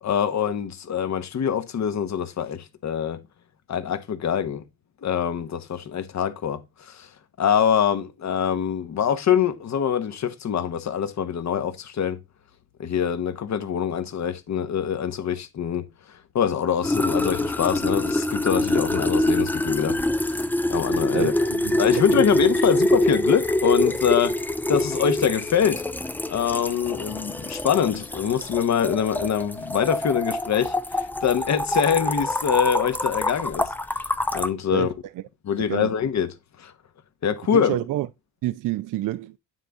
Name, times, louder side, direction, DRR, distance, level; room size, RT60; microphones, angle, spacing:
voice 1, 0.0-3.2 3.7-4.6 5.0-7.1 7.4-12.2 12.8-20.0 20.3-20.4 20.7-21.3 21.8-24.4 24.7-25.8 26.3-33.7 34.3-34.9 35.4-36.7 37.2-37.8, left 8 dB, 45° left, 1.1 m, -24 dB
sound 1, 16.8-34.5, left 1 dB, 5° left, 0.5 m, -25 dB
voice 2, 21.1-22.2 34.7-34.9 35.7-35.9 37.5-38.1 38.4-39.4, right 15 dB, 55° right, 0.5 m, -28 dB
9.1 x 3.4 x 3.8 m
supercardioid pair, 70°, 38 cm